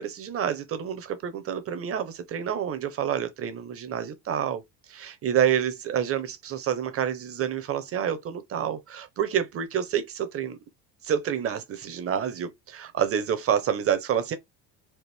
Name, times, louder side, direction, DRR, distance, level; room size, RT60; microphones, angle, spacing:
voice 1, 0.0-4.6 4.9-10.6 11.0-14.4, right 9 dB, 35° right, 0.8 m, -28 dB
4.5 x 2.4 x 3.3 m
cardioid pair, 140°, 40 cm